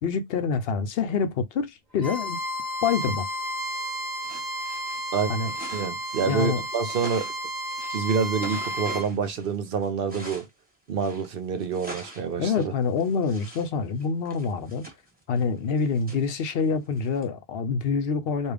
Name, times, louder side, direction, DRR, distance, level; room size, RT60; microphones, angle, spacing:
voice 1, 0.0-2.4 2.8-3.3 5.3-5.5 6.2-6.6 12.4-14.8 15.3-18.5, left 5 dB, 75° left, 0.8 m, -26 dB
Bowed string instrument, 2.0-9.1, equal, 45° right, 1.2 m, -32 dB
sound 1, 4.2-10.5 11.0-13.7 14.0-17.2, right 1 dB, 10° right, 1.2 m, -43 dB
voice 2, 5.7-7.3 7.9-10.5 10.9-12.7, right 6 dB, 65° right, 0.9 m, -27 dB
3.5 x 2.4 x 3.3 m
omnidirectional pair, 1.0 m